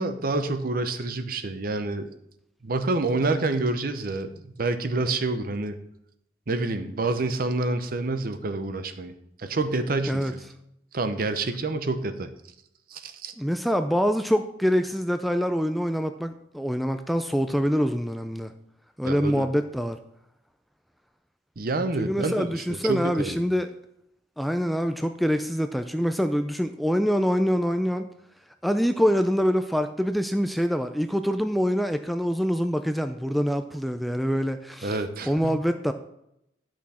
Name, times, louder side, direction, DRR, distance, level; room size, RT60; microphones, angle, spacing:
voice 1, 0.0-2.1 2.6-5.8 6.5-9.1 9.4-10.4 10.9-12.3 12.9-13.3 19.0-19.5 21.6-23.4 34.8-35.6, right 2 dB, 55° right, 9 dB, 0.7 m, -28 dB
voice 2, 13.4-18.5 19.0-20.0 22.0-23.7 24.4-28.1 28.6-35.0 35.3-35.9, equal, ahead, 8 dB, 0.3 m, -25 dB
10.5 x 6.1 x 4.2 m, 0.79 s
head